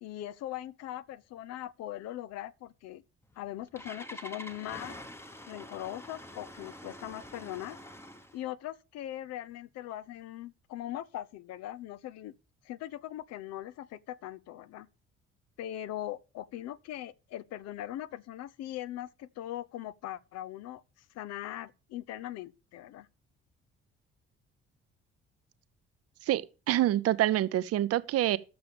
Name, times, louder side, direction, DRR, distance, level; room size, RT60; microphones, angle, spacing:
voice 1, 0.0-3.0 3.4-5.0 5.5-7.8 8.3-12.3 12.6-14.9 15.6-20.8 21.1-23.1, left 13 dB, 50° left, 0.7 m, -40 dB
Engine starting, 3.2-8.4, left 1 dB, 5° left, 1.2 m, -46 dB
voice 2, 26.2-28.4, right 13 dB, 45° right, 0.7 m, -27 dB
12.0 x 6.9 x 5.2 m
figure-of-eight pair, 45°, 33 cm